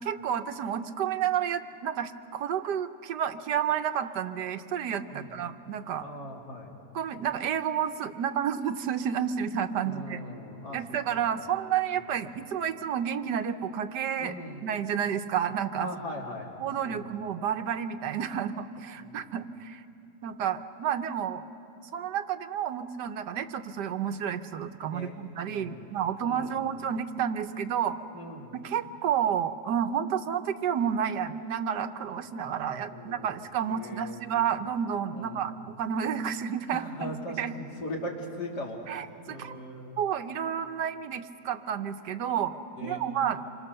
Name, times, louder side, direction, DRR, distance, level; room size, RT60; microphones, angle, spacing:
voice 1, 0.0-6.1 6.9-10.2 10.7-14.3 14.6-15.9 16.6-19.8 20.2-21.4 21.9-28.0 28.5-37.1 37.4-37.5 38.9-39.6 40.0-42.6 42.8-43.4, right 8 dB, 85° right, 9 dB, 1.5 m, -30 dB
voice 2, 5.1-5.4 6.0-6.7 9.8-11.0 11.9-12.1 14.2-14.7 15.8-16.6 16.8-17.1 19.1-19.3 24.9-25.9 26.2-26.6 28.1-28.5 32.6-33.3 33.7-34.2 35.1-35.5 36.7-40.0 42.7-43.0, left 1 dB, 80° left, -1 dB, 3.4 m, -40 dB
27.0 x 25.0 x 6.9 m, 2.7 s
omnidirectional pair, 1.8 m